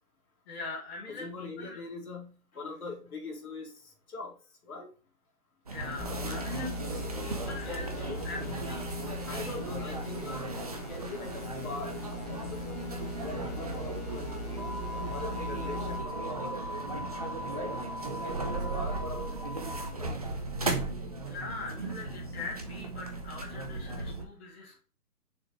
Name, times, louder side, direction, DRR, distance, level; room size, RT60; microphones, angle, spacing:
voice 1, 0.5-1.8 5.7-6.7 7.2-7.9 8.2-9.0 9.3-9.9 10.2-10.4 17.0-17.1 21.2-24.8, left 3 dB, 45° left, -4 dB, 2.1 m, -42 dB
voice 2, 1.1-4.3 4.6-4.9 6.1-8.6 9.1-10.3 10.7-12.0 12.3-12.6 13.2-14.7 15.1-16.6 17.5-17.7 18.2-20.3, left 3 dB, 65° left, -1 dB, 3.1 m, -43 dB
sound 1, 5.7-24.2, right 2 dB, 25° right, 0.5 m, -36 dB
sound 2, 6.0-16.0, left 2 dB, 25° left, 1.4 m, -40 dB
6.7 x 3.6 x 4.3 m, 0.37 s
hypercardioid pair, 150°, 47 cm